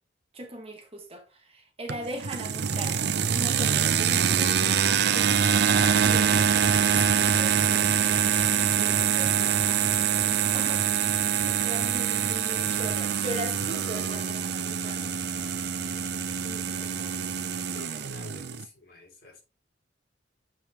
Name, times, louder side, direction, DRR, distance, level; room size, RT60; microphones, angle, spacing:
voice 1, 0.3-15.1 16.4-17.2, right 1 dB, 30° right, 1.4 m, -40 dB
sound 1, 1.9-18.6, right 7 dB, 60° right, 0.6 m, -25 dB
voice 2, 12.6-13.8 17.7-19.4, left 3 dB, 55° left, 3.0 m, -49 dB
7.5 x 5.1 x 3.1 m
head